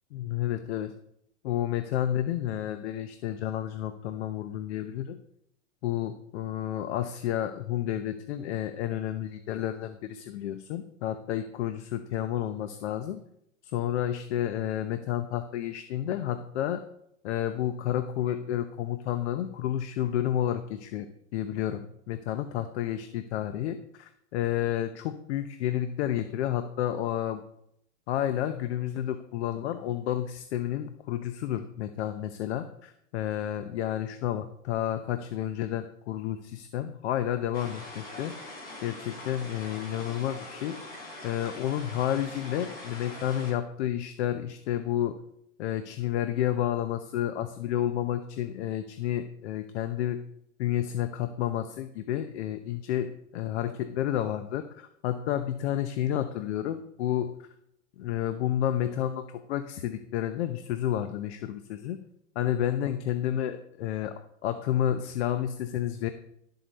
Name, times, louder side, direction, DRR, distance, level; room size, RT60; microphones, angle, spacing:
voice 1, 0.1-0.9 1.4-5.2 5.8-13.2 13.6-16.8 17.2-27.4 28.1-38.3 38.8-40.8 41.2-45.1 45.6-50.2 50.6-57.3 58.0-62.0 62.3-64.1 64.4-66.1, left 11 dB, 55° left, 9 dB, 0.8 m, -30 dB
sound 1, 37.5-43.5, left 2 dB, 25° left, 4.2 m, -43 dB
12.0 x 7.8 x 4.1 m, 0.73 s
supercardioid pair, 160°, 39 cm